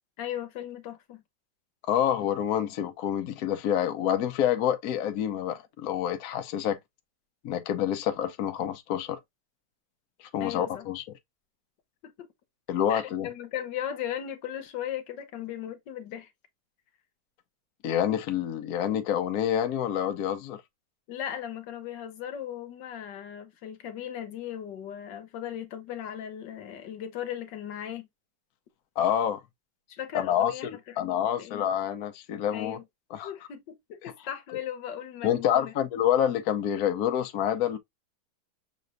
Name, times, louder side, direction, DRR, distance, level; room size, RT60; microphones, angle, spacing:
voice 1, 0.2-1.2 10.4-10.9 12.0-12.3 12.9-16.3 21.1-28.1 29.9-31.6 32.5-32.8 33.2-35.7, left 10 dB, 85° left, 1.5 m, -37 dB
voice 2, 1.9-6.8 7.4-9.2 10.2-11.0 12.7-13.3 17.8-20.6 29.0-29.4 30.1-32.8 33.1-33.3 35.2-37.8, left 10 dB, 65° left, 1.1 m, -27 dB
6.7 x 3.1 x 2.5 m
omnidirectional pair, 1.9 m